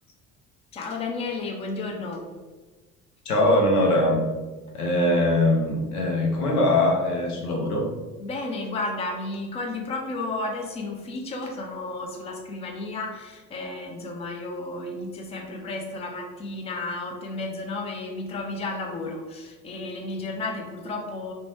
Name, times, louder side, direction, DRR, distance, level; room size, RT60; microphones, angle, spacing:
voice 1, 0.7-2.3 8.2-21.3, left 2 dB, 15° left, 2 dB, 0.3 m, -32 dB
voice 2, 3.3-4.2 4.7-7.9, left 1 dB, 80° left, 0 dB, 0.7 m, -21 dB
2.6 x 2.1 x 3.1 m, 1.3 s
figure-of-eight pair, 55°, 44 cm